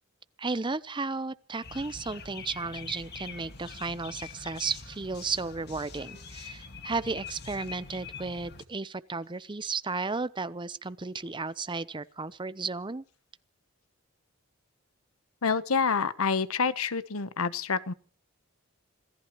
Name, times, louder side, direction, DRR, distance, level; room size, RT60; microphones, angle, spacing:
voice 1, 0.4-13.0, right 4 dB, 20° right, 0.7 m, -34 dB
sound 1, 1.6-8.6, left 5 dB, 50° left, 2.0 m, -44 dB
voice 2, 15.4-17.9, left 5 dB, 90° left, 1.0 m, -27 dB
26.5 x 17.5 x 3.1 m
head